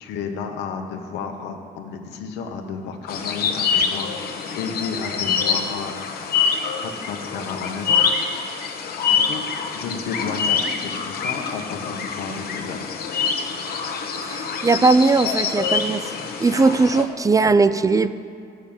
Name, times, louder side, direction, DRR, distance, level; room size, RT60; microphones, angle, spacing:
voice 1, 0.0-5.9 6.8-8.0 9.1-9.5 9.7-12.9, left 5 dB, 85° left, 4 dB, 1.4 m, -32 dB
sound 1, 3.1-17.0, left 6 dB, 65° left, 1.3 m, -25 dB
voice 2, 14.2-16.0 16.4-18.1, right 3 dB, 20° right, 12 dB, 0.4 m, -18 dB
12.0 x 6.5 x 8.9 m, 2.4 s
cardioid pair, 110°, 17 cm